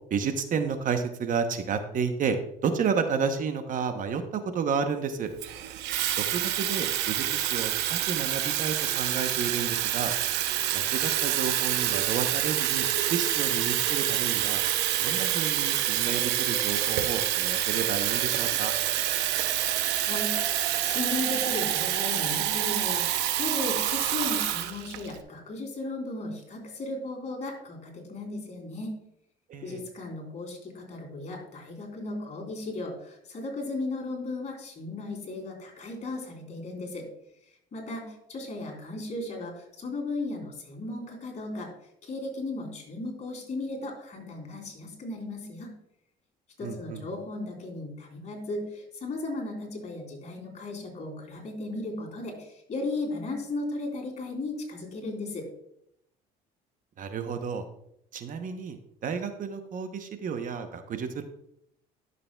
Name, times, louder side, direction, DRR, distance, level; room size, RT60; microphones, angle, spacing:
voice 1, 0.1-2.4 2.6-5.3 6.2-10.1 10.7-14.6 15.0-18.7 29.5-29.8 46.6-47.0 57.0-57.6 58.1-61.2, right 6 dB, 50° right, 8 dB, 0.9 m, -31 dB
Water tap faucet / Fill (with liquid), 5.4-25.2, right 12 dB, 85° right, 0.7 m, -27 dB
voice 2, 20.8-29.0 29.6-37.1 37.7-41.7 42.0-45.7 46.6-55.5, left 2 dB, 45° left, 0 dB, 3.2 m, -36 dB
12.0 x 6.7 x 2.3 m, 0.75 s
cardioid pair, 95°, 17 cm